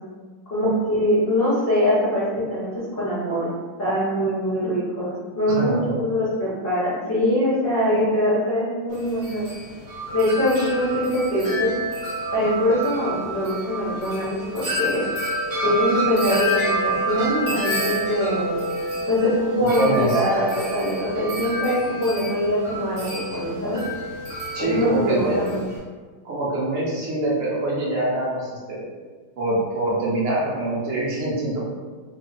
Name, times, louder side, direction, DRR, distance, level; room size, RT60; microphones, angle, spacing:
voice 1, 0.5-3.5 3.8-9.5 10.1-11.7 12.3-15.1 15.6-18.6 19.1-23.8 24.6-25.6, equal, 70° left, -9 dB, 0.5 m, -23 dB
voice 2, 5.5-5.9 10.5-10.7 19.7-20.2 24.5-25.4 26.2-28.8 29.4-31.6, right 1 dB, 65° right, -7 dB, 0.6 m, -24 dB
Wind chime, 8.9-25.8, right 1 dB, 45° right, 1.2 m, -28 dB
3.4 x 2.0 x 3.9 m, 1.4 s
omnidirectional pair, 2.3 m